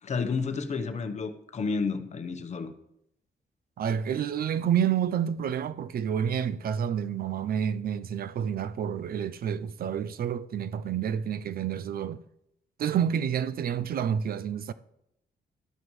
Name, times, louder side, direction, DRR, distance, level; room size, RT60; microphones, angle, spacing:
voice 1, 0.0-2.7, left 4 dB, 40° left, 1.0 m, -31 dB
voice 2, 3.8-12.2 12.8-14.7, right 8 dB, 60° right, 0.5 m, -29 dB
12.5 x 12.0 x 3.2 m
wide cardioid pair, 145°, 17 cm